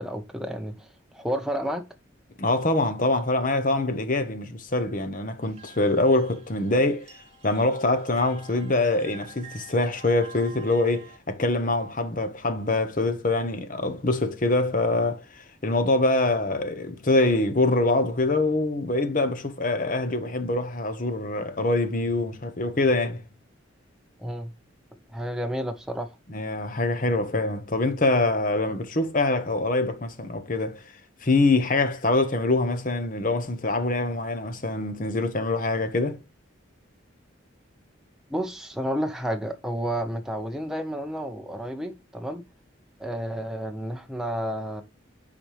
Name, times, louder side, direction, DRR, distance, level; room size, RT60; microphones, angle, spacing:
voice 1, 0.0-1.8 24.2-24.5 25.1-26.1 38.3-42.4 43.0-44.8, equal, 5° right, 0.5 m, -31 dB
voice 2, 2.4-7.1 7.4-23.2 26.3-30.8 31.2-36.2, left 2 dB, 40° left, 0.9 m, -24 dB
sound 1, 5.4-11.2, right 5 dB, 30° right, 2.7 m, -48 dB
9.0 x 4.2 x 3.3 m
head